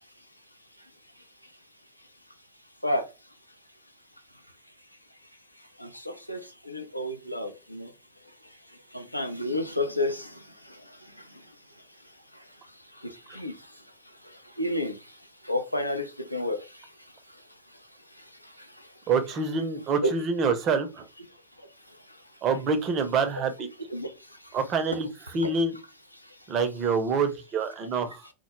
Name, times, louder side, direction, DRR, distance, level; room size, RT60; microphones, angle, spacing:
voice 1, 5.8-6.4 6.7-7.9 8.9-10.3 13.3-13.5 14.6-14.9 15.5-16.6 20.0-20.1 23.9-24.1, left 1 dB, 90° left, 0.4 m, -29 dB
voice 2, 19.1-21.1 22.4-23.7 24.5-25.8 26.5-28.3, right 5 dB, 30° right, 0.5 m, -26 dB
2.0 x 2.0 x 3.0 m
figure-of-eight pair, 90°, 0 cm